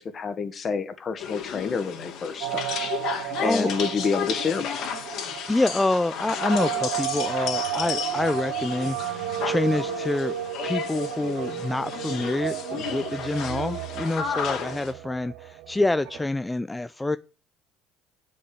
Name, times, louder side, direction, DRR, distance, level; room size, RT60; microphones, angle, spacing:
voice 1, 0.0-2.8 3.4-4.9, left 5 dB, 40° left, 1.8 m, -28 dB
sound 1, 1.2-14.9, left 7 dB, 60° left, 2.5 m, -33 dB
sound 2, 2.4-16.3, right 14 dB, 70° right, 0.7 m, -33 dB
voice 2, 3.1-3.7 5.5-10.4 10.6-17.2, left 2 dB, 15° left, 0.5 m, -27 dB
7.7 x 6.4 x 8.1 m
hypercardioid pair, 65°, 0 cm